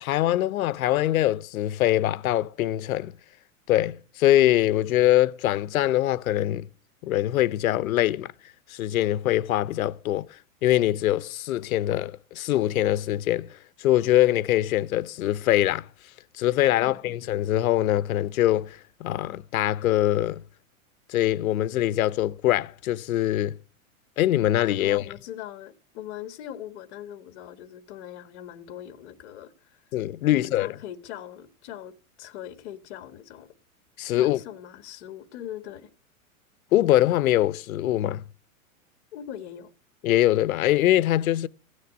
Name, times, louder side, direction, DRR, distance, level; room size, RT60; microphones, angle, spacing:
voice 1, 0.0-3.1 3.7-6.7 7.0-8.3 8.7-10.3 10.6-15.9 16.4-20.4 21.1-23.6 24.2-25.1 29.9-30.7 34.0-34.4 36.7-38.2 40.0-41.5, left 13 dB, 75° left, 0.9 m, -23 dB
voice 2, 16.8-17.1 24.8-29.8 30.3-31.9 32.2-33.5 34.1-35.9 39.1-39.7, left 11 dB, 50° left, 1.7 m, -41 dB
16.0 x 6.6 x 9.3 m
supercardioid pair, 155°, 42 cm